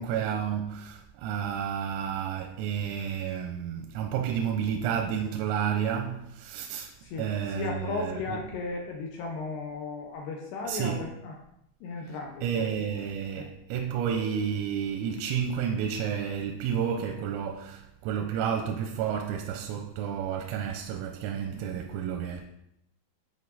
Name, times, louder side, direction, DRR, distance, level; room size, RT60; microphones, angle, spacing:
voice 1, 0.0-6.9 7.2-8.2 10.7-11.1 12.4-22.5, right 8 dB, 90° right, 3.3 m, -31 dB
voice 2, 7.0-11.3 11.8-12.5 13.4-13.5, left 4 dB, 80° left, 2.5 m, -35 dB
10.5 x 4.9 x 4.1 m
omnidirectional pair, 6.0 m